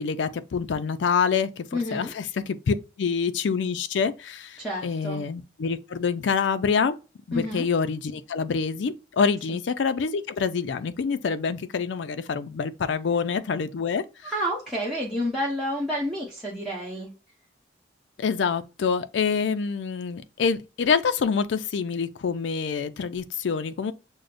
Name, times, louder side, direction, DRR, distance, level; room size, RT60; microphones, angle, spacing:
voice 1, 0.0-1.6 1.9-7.0 7.3-14.3 18.2-23.9, left 5 dB, 85° left, 0.4 m, -26 dB
voice 2, 1.7-2.1 4.6-5.2 7.3-7.7 9.5-9.6 14.2-17.1, equal, ahead, 0.9 m, -29 dB
6.2 x 2.1 x 2.5 m
head